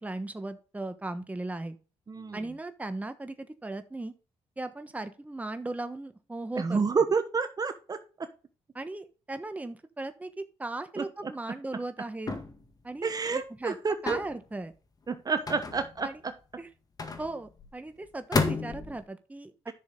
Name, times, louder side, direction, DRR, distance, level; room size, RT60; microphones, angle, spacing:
voice 1, 0.0-1.8 2.3-4.1 4.6-7.0 8.7-12.3 12.8-13.7 14.0-14.7 16.0-16.2 16.6-16.7 17.2-19.5, right 2 dB, 15° right, 9 dB, 1.2 m, -37 dB
voice 2, 2.1-2.5 6.5-8.3 11.0-11.3 13.0-14.2 15.1-16.3 19.7-19.8, right 5 dB, 35° right, 10 dB, 1.1 m, -29 dB
sound 1, 12.3-12.7 14.1-14.4 15.5-16.1 17.0-17.7 18.3-19.0, left 4 dB, 35° left, 1.9 m, -31 dB
10.5 x 6.4 x 3.8 m, 0.36 s
cardioid pair, 75°, 11 cm